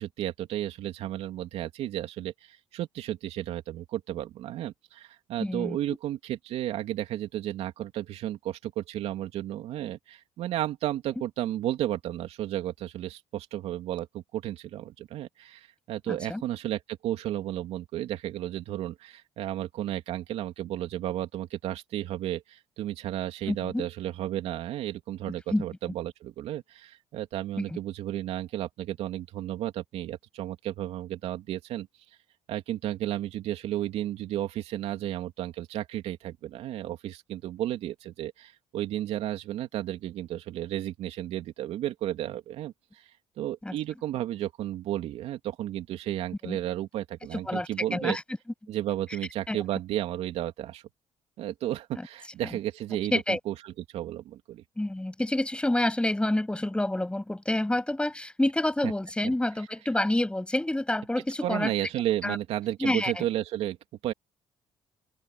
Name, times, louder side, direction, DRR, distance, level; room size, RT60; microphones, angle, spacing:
voice 1, 0.0-31.9 32.5-48.2 48.7-50.8 51.4-54.6 58.8-58.9 61.4-63.8 64.0-64.1, right 13 dB, 75° right, 3.1 m, -33 dB
voice 2, 5.4-5.8 16.1-16.4 23.5-23.8 25.5-25.6 43.6-43.7 46.4-46.6 47.5-48.2 49.5-49.6 53.1-53.4 54.8-61.7 62.2-62.4 62.8-63.2, left 1 dB, 10° left, 7.7 m, -28 dB
open air
supercardioid pair, 75°, 11 cm